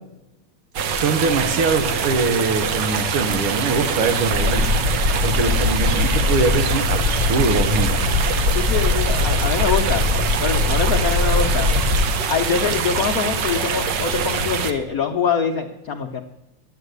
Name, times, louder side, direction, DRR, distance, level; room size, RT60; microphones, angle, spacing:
sound 1, 0.7-14.7, right 5 dB, 65° right, 1.4 m, -24 dB
voice 1, 0.8-4.9 5.2-8.0, right 4 dB, 85° right, 8 dB, 2.1 m, -23 dB
sound 2, 4.3-12.1, left 3 dB, 35° right, 1.6 m, -21 dB
voice 2, 8.5-10.0 10.4-11.7 12.3-16.2, left 6 dB, 60° left, 4 dB, 0.9 m, -24 dB
10.5 x 9.7 x 8.1 m, 0.92 s
omnidirectional pair, 2.4 m